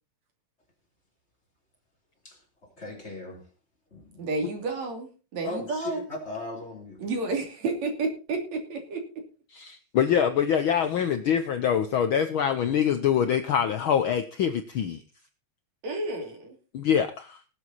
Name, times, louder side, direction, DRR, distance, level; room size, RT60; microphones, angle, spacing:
voice 1, 2.2-3.5 3.9-4.3 5.4-7.0, left 2 dB, 20° left, 3.5 m, -38 dB
voice 2, 4.2-6.0 7.0-9.0 15.8-16.6, right 3 dB, 60° right, 4.0 m, -31 dB
voice 3, 9.5-15.0 16.7-17.4, left 8 dB, 80° left, 1.1 m, -24 dB
19.0 x 8.1 x 4.1 m
omnidirectional pair, 3.5 m